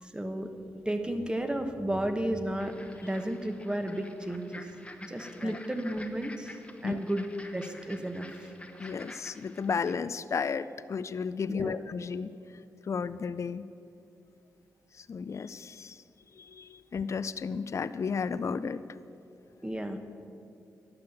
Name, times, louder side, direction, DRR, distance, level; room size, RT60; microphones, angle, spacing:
voice 1, 0.0-2.7 3.0-4.7 5.0-7.3 7.5-8.5 11.5-11.8 19.6-20.0, right 1 dB, 15° right, 7 dB, 1.2 m, -33 dB
sound 1, 2.6-10.0, left 1 dB, 15° left, 1.1 m, -49 dB
voice 2, 8.8-12.3 12.8-13.7 14.9-16.0 16.3-18.8, left 5 dB, 45° left, 14 dB, 0.4 m, -33 dB
12.0 x 5.7 x 7.6 m, 2.6 s
supercardioid pair, 45°, 7 cm